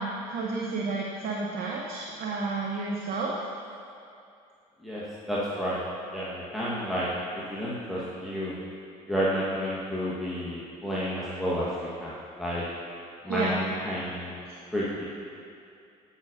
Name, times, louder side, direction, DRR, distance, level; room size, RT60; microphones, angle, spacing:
voice 1, 0.0-3.4 13.3-13.5 14.5-14.6, right 3 dB, 55° right, -2 dB, 0.9 m, -31 dB
voice 2, 4.8-5.8 6.1-7.1 7.5-8.6 9.1-12.6 13.2-14.4 14.7-15.0, equal, ahead, -8 dB, 1.3 m, -31 dB
8.2 x 8.1 x 2.6 m, 2.6 s
supercardioid pair, 75°, 18 cm